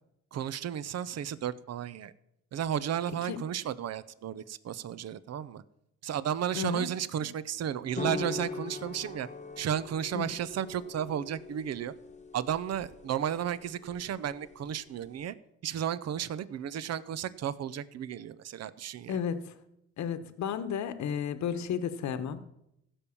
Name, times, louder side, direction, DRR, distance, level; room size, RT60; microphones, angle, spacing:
voice 1, 0.3-2.1 2.5-5.6 6.0-9.3 9.6-11.9 12.3-15.3 15.6-19.2, right 9 dB, 60° right, 17 dB, 0.7 m, -33 dB
voice 2, 6.5-6.9 10.1-10.3 19.1-19.5 20.0-22.5, left 7 dB, 65° left, 11 dB, 1.1 m, -33 dB
sound 1, 8.0-15.3, left 4 dB, 25° left, 1.1 m, -42 dB
15.5 x 5.4 x 7.1 m, 0.80 s
cardioid pair, 90°, 30 cm